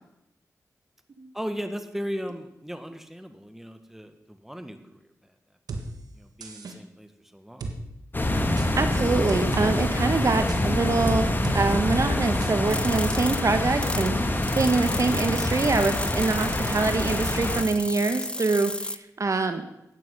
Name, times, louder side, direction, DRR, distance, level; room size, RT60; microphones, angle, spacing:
voice 1, 1.3-5.1 5.7-5.8 6.1-7.6 14.1-14.5, equal, 5° right, 8 dB, 1.5 m, -37 dB
sound 1, 5.7-5.8 6.4-6.8 7.6-7.7 8.6-8.7 9.3-9.7 10.5-10.6 11.4-11.6 11.9-12.1 12.4-12.5 13.1-13.2, right 3 dB, 80° right, 1.5 m, -34 dB
sound 2, 8.1-17.6, left 1 dB, 30° left, 1.5 m, -26 dB
voice 2, 8.8-14.3 14.6-19.6, right 3 dB, 55° right, 8 dB, 1.2 m, -25 dB
sound 3, 12.7-14.1 14.4-19.0, left 1 dB, 15° left, 0.6 m, -34 dB
13.0 x 9.0 x 5.4 m, 0.85 s
cardioid pair, 45°, 6 cm